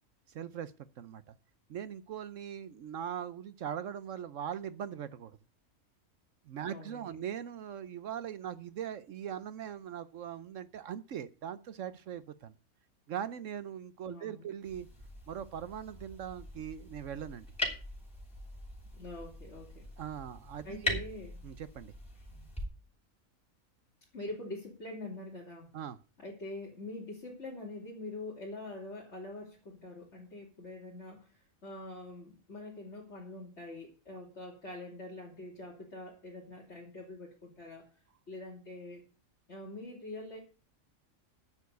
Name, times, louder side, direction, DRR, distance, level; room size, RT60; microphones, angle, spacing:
voice 1, 0.3-1.3 1.7-5.3 6.5-12.5 13.1-14.9 15.3-17.5 20.0-21.0 21.4-21.9 25.7-26.0, right 9 dB, 65° right, 15 dB, 1.0 m, -40 dB
voice 2, 6.6-7.1 14.0-14.5 18.9-19.9 20.6-21.3 22.1-22.5 24.1-25.7 26.2-37.9 38.3-39.0 39.5-40.4, left 2 dB, 55° left, -4 dB, 3.2 m, -44 dB
sound 1, 14.6-22.6, left 2 dB, 5° left, 5.6 m, -41 dB
11.0 x 7.2 x 8.1 m, 0.36 s
omnidirectional pair, 1.4 m